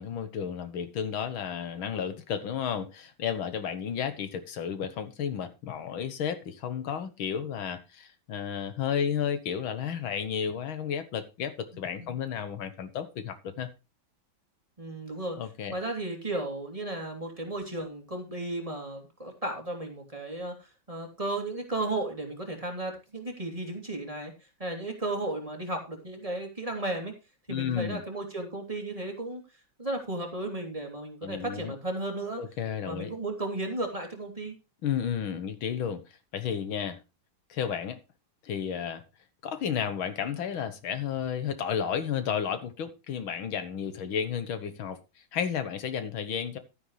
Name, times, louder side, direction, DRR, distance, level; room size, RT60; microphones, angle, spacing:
voice 1, 0.0-13.7 15.4-15.7 27.5-28.0 31.2-31.8 32.4-33.1 34.8-36.0 36.3-37.0 37.5-38.0 38.4-39.0 39.4-45.0 45.3-46.6, left 8 dB, 85° left, 2.0 m, -32 dB
voice 2, 14.8-15.4 15.7-20.6 20.9-24.3 24.6-27.1 27.5-29.4 29.8-32.4 32.8-34.5, right 2 dB, 15° right, 2.8 m, -34 dB
12.0 x 9.6 x 3.2 m
omnidirectional pair, 2.1 m